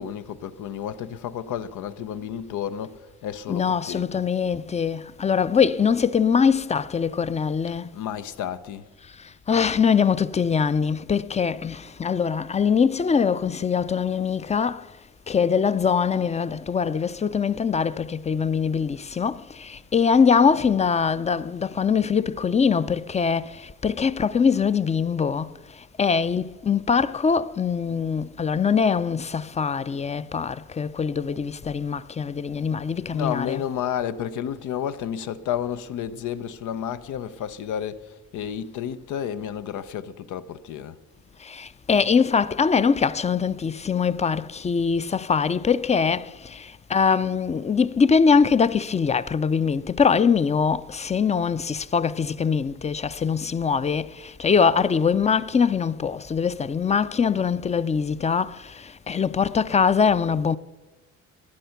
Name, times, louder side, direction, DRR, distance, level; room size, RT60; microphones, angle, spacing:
voice 1, 0.0-4.2 7.9-8.9 33.1-41.0, left 9 dB, 85° left, 0.8 m, -31 dB
voice 2, 3.5-7.9 9.5-14.8 15.3-23.6 23.8-25.5 26.0-33.6 41.5-58.6 59.1-60.6, left 6 dB, 20° left, 0.5 m, -22 dB
16.0 x 10.5 x 5.8 m
cardioid pair, 90°, 30 cm